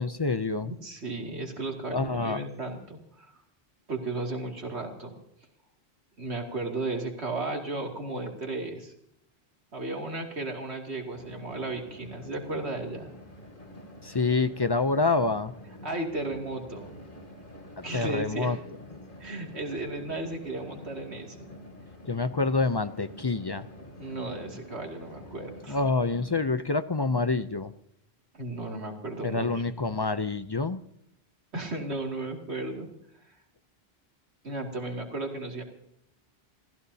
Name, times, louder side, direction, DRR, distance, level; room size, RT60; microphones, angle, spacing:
voice 1, 0.0-0.7 1.9-2.4 14.0-15.5 17.8-18.6 22.1-23.7 25.7-27.7 29.2-30.8, left 3 dB, 35° left, 12 dB, 0.4 m, -27 dB
voice 2, 0.6-3.4 3.9-5.1 6.2-8.9 9.7-13.1 15.8-16.9 17.8-18.6 19.2-21.6 24.0-25.8 28.3-29.6 31.5-32.9 33.2-33.3 34.4-35.6, right 2 dB, 80° right, 2 dB, 2.8 m, -35 dB
sound 1, 11.1-26.4, left 1 dB, 50° left, 2.9 m, -47 dB
28.5 x 15.5 x 2.8 m, 0.78 s
omnidirectional pair, 1.1 m